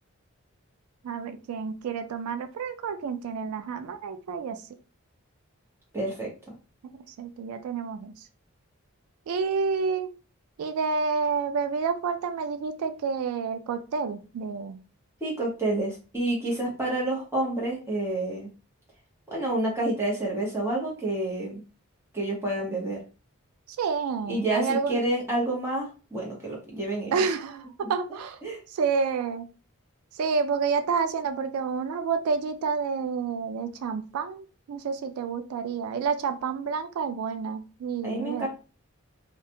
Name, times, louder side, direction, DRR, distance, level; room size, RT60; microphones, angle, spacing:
voice 1, 1.0-4.6 6.9-8.1 9.3-10.1 10.6-14.8 23.8-25.0 27.1-28.4 28.7-29.5 30.1-38.5, right 5 dB, 85° right, 8 dB, 0.3 m, -29 dB
voice 2, 5.9-6.3 15.2-18.5 19.3-21.6 22.1-23.0 24.3-27.3 27.8-27.9 28.4-28.6 38.0-38.5, right 1 dB, 10° right, -4 dB, 0.8 m, -29 dB
2.4 x 2.1 x 2.8 m, 0.34 s
head